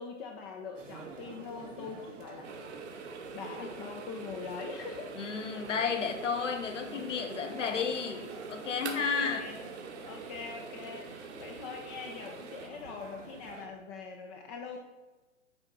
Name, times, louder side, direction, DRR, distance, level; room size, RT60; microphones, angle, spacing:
voice 1, 0.0-2.5 3.3-5.1 8.9-9.7 10.0-14.8, left 5 dB, 15° left, 0.4 m, -43 dB
sound 1, 0.7-13.7, right 3 dB, 80° right, 1.8 m, -49 dB
sound 2, 2.4-12.7, right 5 dB, 65° right, 1.3 m, -45 dB
voice 2, 5.2-9.5, left 6 dB, 75° left, 1.3 m, -32 dB
10.0 x 3.5 x 6.0 m
figure-of-eight pair, 120°, 37 cm